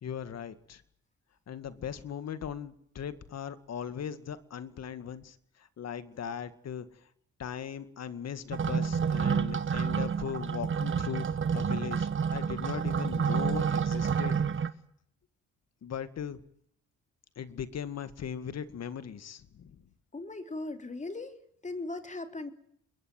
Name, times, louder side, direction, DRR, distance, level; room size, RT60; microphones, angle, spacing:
voice 1, 0.0-0.8 1.5-7.0 7.4-11.3 11.5-14.4 15.8-16.4 17.4-19.8, left 8 dB, 60° left, 12 dB, 2.1 m, -39 dB
sound 1, 8.5-14.7, right 6 dB, 40° right, 1.5 m, -29 dB
voice 2, 20.1-21.4 21.6-22.5, left 2 dB, 25° left, 7 dB, 3.5 m, -38 dB
27.5 x 21.5 x 7.8 m, 0.68 s
cardioid pair, 90°, 30 cm